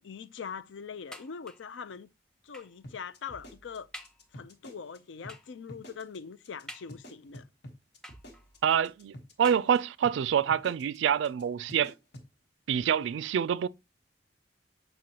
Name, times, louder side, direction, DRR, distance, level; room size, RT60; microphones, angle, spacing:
voice 1, 0.0-2.1 2.4-3.9 4.3-7.4, left 6 dB, 80° left, 0.5 m, -42 dB
sound 1, 1.1-1.8 2.5-2.9 3.4-3.5 3.9-4.3 5.3-5.6 6.7-7.3 8.0-8.6 9.4-10.1 10.9-11.0 11.4-11.5, equal, 5° left, 0.6 m, -49 dB
sound 2, 2.8-5.0 5.2-5.4 5.7-6.2 6.4-6.6 6.9-9.8 10.0-10.2 10.5-11.0 11.2-11.4 11.7-12.3, equal, 60° left, 1.3 m, -48 dB
voice 2, 8.6-11.9 12.7-13.7, right 8 dB, 75° right, 0.3 m, -26 dB
7.6 x 5.4 x 2.9 m
head